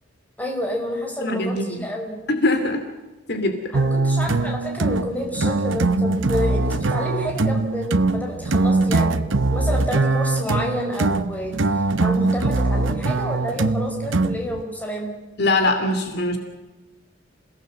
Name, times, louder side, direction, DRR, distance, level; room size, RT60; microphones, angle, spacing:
voice 1, 0.4-2.2 3.7-15.1, equal, 10° left, 1 dB, 5.1 m, -29 dB
voice 2, 1.2-1.8 2.3-2.9 3.3-3.6 15.4-16.4, left 2 dB, 50° left, 6 dB, 2.7 m, -22 dB
sound 1, 3.7-14.6, right 3 dB, 65° right, 1.0 m, -22 dB
28.0 x 17.5 x 7.7 m, 1.2 s
head